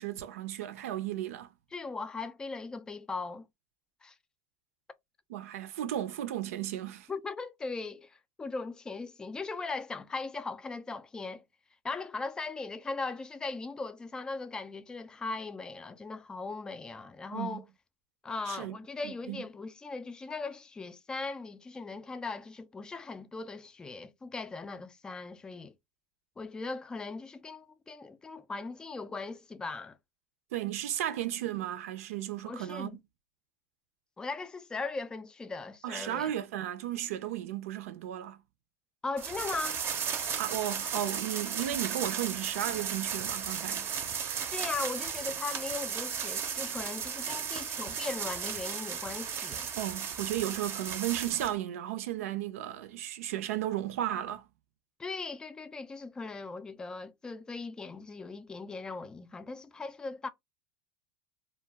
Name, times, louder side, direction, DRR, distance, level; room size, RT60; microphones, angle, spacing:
voice 1, 0.0-1.5 5.3-7.1 17.3-17.6 18.5-18.8 19.0-19.4 30.5-33.0 35.8-38.4 40.4-43.9 49.8-54.5, right 12 dB, 80° right, 0.5 m, -34 dB
voice 2, 1.7-3.5 4.0-4.2 7.1-11.4 11.8-17.6 18.2-25.7 26.4-30.0 32.4-33.0 34.2-36.3 39.0-39.9 44.5-49.7 55.0-60.3, left 3 dB, 10° left, 0.3 m, -39 dB
sound 1, 39.2-51.5, right 7 dB, 30° right, 0.6 m, -35 dB
2.3 x 2.2 x 3.3 m
supercardioid pair, 135°, 8 cm